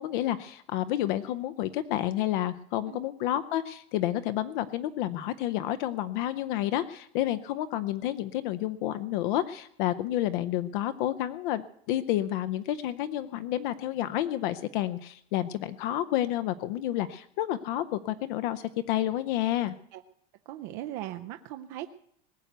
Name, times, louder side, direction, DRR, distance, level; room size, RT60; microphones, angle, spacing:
voice 1, 0.0-11.6 11.9-19.7, left 13 dB, 50° left, 12 dB, 0.6 m, -30 dB
voice 2, 20.5-21.9, right 14 dB, 40° right, 7 dB, 0.6 m, -38 dB
19.5 x 8.0 x 8.0 m, 0.70 s
supercardioid pair, 165°, 32 cm